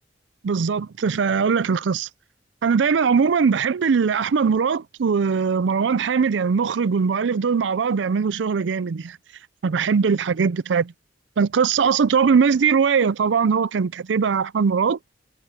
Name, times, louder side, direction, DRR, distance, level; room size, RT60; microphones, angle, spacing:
voice 1, 0.4-2.1 2.6-9.2 9.6-10.9 11.4-15.0, right 5 dB, 90° right, 0.5 m, -20 dB
head